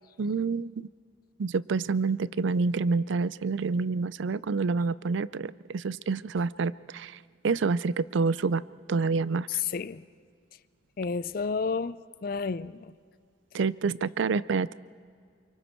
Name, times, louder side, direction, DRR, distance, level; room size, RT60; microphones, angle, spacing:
voice 1, 0.2-0.9 1.4-7.2 7.4-8.6 8.9-9.6 13.5-14.7, right 4 dB, 70° right, 0.4 m, -28 dB
voice 2, 9.5-10.0 11.0-12.9, left 5 dB, 45° left, 0.4 m, -31 dB
27.5 x 24.5 x 4.5 m
head